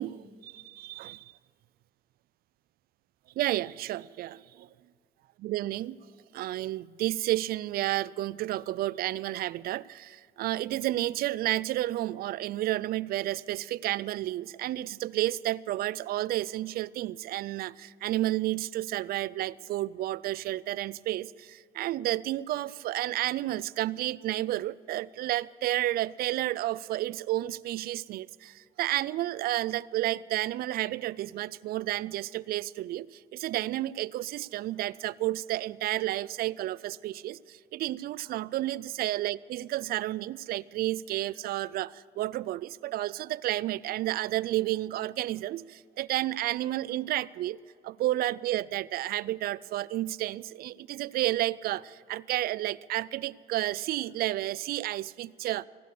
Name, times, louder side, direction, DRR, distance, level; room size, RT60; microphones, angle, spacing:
voice 1, 0.0-1.3 3.4-4.7 5.4-6.0 6.3-47.6 47.8-55.7, right 15 dB, 65° right, 20 dB, 0.4 m, -31 dB
16.5 x 12.0 x 6.6 m, 2.1 s
cardioid pair, 110°, 17 cm